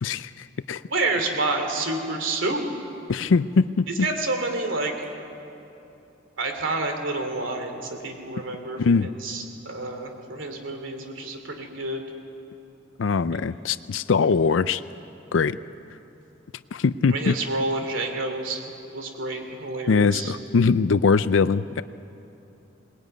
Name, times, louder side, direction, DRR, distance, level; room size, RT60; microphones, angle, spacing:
voice 1, 0.0-0.8 3.1-4.1 8.8-9.1 13.0-14.8 15.3-15.6 16.7-17.3 19.9-21.8, left 5 dB, 85° left, 14 dB, 0.5 m, -22 dB
voice 2, 0.9-2.6 4.0-4.9 6.4-12.0 17.1-18.6 18.9-20.3, right 2 dB, 85° right, 5 dB, 3.0 m, -29 dB
21.5 x 19.5 x 9.4 m, 2.9 s
head